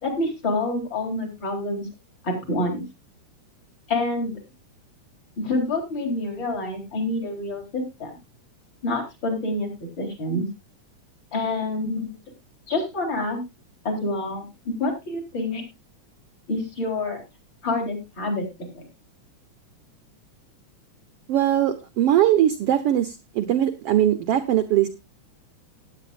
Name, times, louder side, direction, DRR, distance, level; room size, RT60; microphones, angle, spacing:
voice 1, 0.0-1.9 2.2-2.8 3.9-4.4 5.4-8.1 8.8-9.7 10.0-10.5 11.3-12.2 12.7-13.4 13.8-15.6 16.5-17.2 17.6-18.5 18.7-18.8, left 2 dB, 35° left, 1 dB, 4.3 m, -27 dB
voice 2, 21.3-24.9, right 11 dB, 70° right, 11 dB, 1.5 m, -21 dB
18.0 x 9.2 x 2.5 m, 0.25 s
omnidirectional pair, 3.6 m